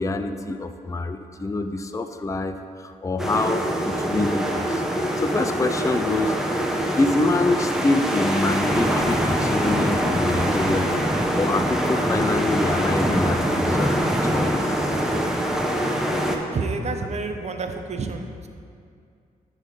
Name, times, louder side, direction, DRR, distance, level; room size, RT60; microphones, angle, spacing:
voice 1, 0.0-6.3 7.0-15.5, left 2 dB, 20° left, 8 dB, 0.5 m, -26 dB
sound 1, 3.2-16.4, equal, 5° right, 1.0 m, -23 dB
voice 2, 16.2-18.5, right 3 dB, 45° right, 5 dB, 0.8 m, -29 dB
11.5 x 3.9 x 5.2 m, 2.3 s
supercardioid pair, 60°, 15 cm